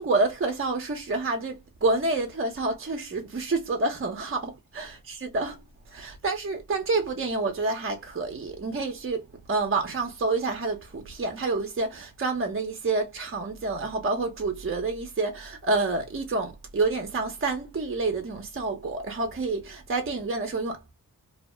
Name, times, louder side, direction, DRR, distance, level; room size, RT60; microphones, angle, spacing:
voice 1, 0.0-5.6 5.9-9.2 9.5-20.9, right 3 dB, 40° right, 0.7 m, -28 dB
2.7 x 2.0 x 3.2 m
wide cardioid pair, 90°, 34 cm